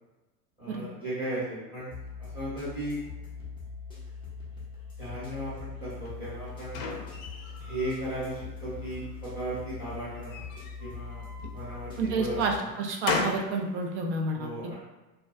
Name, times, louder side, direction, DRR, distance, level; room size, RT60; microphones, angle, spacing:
voice 1, 0.6-1.9 2.2-3.0 5.0-6.9 7.6-10.5 10.8-12.7 14.3-14.7, right 1 dB, 15° right, -11 dB, 1.0 m, -36 dB
sound 1, 1.9-12.6, left 5 dB, 10° left, 0.4 m, -42 dB
sound 2, 6.1-8.0 8.4-9.2 10.2-11.6 12.2-13.5, left 4 dB, 60° left, 0.6 m, -36 dB
voice 2, 12.0-14.7, right 3 dB, 50° right, 2 dB, 0.4 m, -29 dB
2.3 x 2.2 x 2.4 m, 1.1 s
hypercardioid pair, 100°, 49 cm